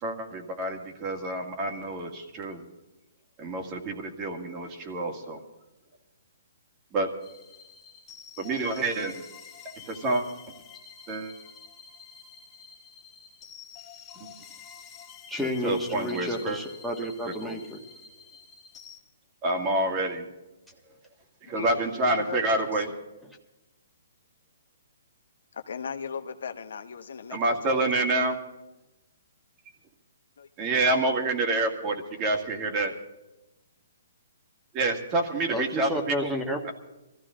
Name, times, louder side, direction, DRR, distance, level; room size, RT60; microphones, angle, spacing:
voice 1, 0.0-2.7 3.4-5.4 6.9-7.1 8.4-9.2 9.9-10.2 11.1-11.3 14.2-14.3 15.6-16.6 17.4-17.6 19.4-20.3 21.4-22.9 27.3-28.4 30.6-32.9 34.7-36.3, right 2 dB, 25° right, 3 dB, 2.0 m, -28 dB
sound 1, 7.2-19.0, left 7 dB, 15° left, 1.4 m, -49 dB
voice 2, 15.3-17.8 35.5-36.7, equal, ahead, 3 dB, 1.5 m, -31 dB
voice 3, 21.5-22.8 25.5-27.4 27.7-27.9 30.4-30.5 30.8-30.9, left 6 dB, 75° left, 8 dB, 1.1 m, -37 dB
22.0 x 14.5 x 3.8 m, 1.0 s
hypercardioid pair, 155°, 0 cm